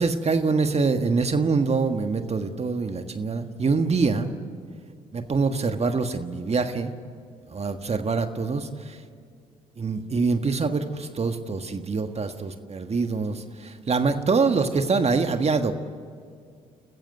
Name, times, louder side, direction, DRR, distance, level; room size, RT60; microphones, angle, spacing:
voice 1, 0.0-4.3 5.1-6.9 7.5-9.0 9.8-15.7, right 4 dB, 35° right, 7 dB, 1.6 m, -25 dB
28.5 x 14.5 x 9.5 m, 2.2 s
hypercardioid pair, 55°, 17 cm